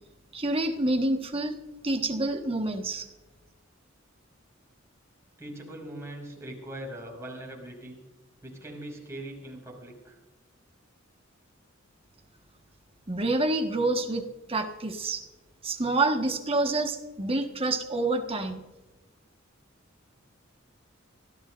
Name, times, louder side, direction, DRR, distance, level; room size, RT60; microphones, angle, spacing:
voice 1, 0.3-1.6 1.8-3.1 13.1-14.2 14.5-15.2 15.6-18.6, right 2 dB, 30° right, 5 dB, 1.5 m, -27 dB
voice 2, 5.4-8.0 8.4-10.2, right 1 dB, 15° right, -1 dB, 5.6 m, -41 dB
26.0 x 16.0 x 2.6 m, 1.1 s
head